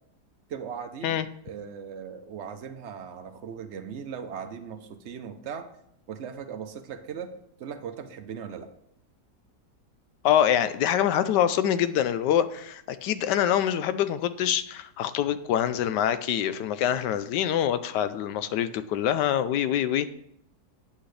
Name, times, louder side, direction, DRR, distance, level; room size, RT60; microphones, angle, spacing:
voice 1, 0.5-1.2 1.4-5.7 6.1-7.3 7.6-8.7, right 7 dB, 60° right, 8 dB, 0.7 m, -38 dB
voice 2, 10.2-20.1, left 10 dB, 85° left, 13 dB, 1.2 m, -25 dB
8.6 x 8.2 x 3.3 m, 0.74 s
omnidirectional pair, 1.8 m